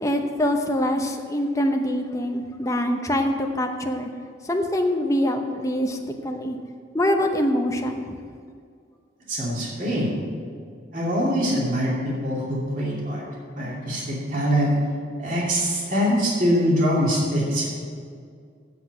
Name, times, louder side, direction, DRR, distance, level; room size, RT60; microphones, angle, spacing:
voice 1, 0.0-4.1 4.4-6.0 6.2-6.6 6.9-8.0, left 1 dB, 15° left, 3 dB, 0.8 m, -24 dB
voice 2, 9.3-10.1 10.9-13.3 13.5-14.8 15.2-17.9, equal, 40° right, -5 dB, 2.6 m, -23 dB
8.2 x 7.8 x 7.8 m, 2.2 s
head